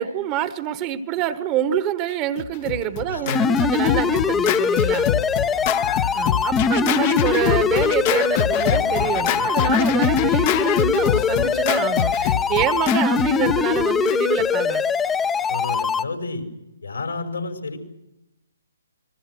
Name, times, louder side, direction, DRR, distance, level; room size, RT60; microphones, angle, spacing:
voice 1, 0.0-5.1 6.1-14.8, right 10 dB, 25° right, 13 dB, 1.4 m, -26 dB
Scratching (performance technique), 2.4-14.5, left 11 dB, 35° left, 1.0 m, -25 dB
voice 2, 3.1-3.5 5.6-5.7 15.5-16.4 16.8-17.8, left 3 dB, 80° left, 5 dB, 5.5 m, -30 dB
sound 1, 3.3-16.0, left 6 dB, 10° left, 0.8 m, -22 dB
29.5 x 21.5 x 6.3 m, 0.93 s
figure-of-eight pair, 135°, 0 cm